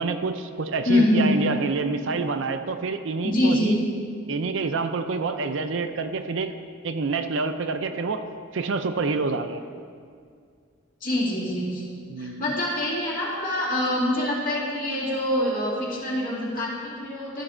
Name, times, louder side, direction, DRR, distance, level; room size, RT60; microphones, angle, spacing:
voice 1, 0.0-3.8 4.3-6.6 6.8-8.3 8.5-9.6 12.1-12.4, right 4 dB, 65° right, 9 dB, 0.5 m, -27 dB
voice 2, 0.8-1.4 3.2-3.9 11.0-11.8 12.2-17.4, left 1 dB, 40° left, -7 dB, 2.5 m, -25 dB
13.0 x 6.1 x 4.4 m, 2.1 s
head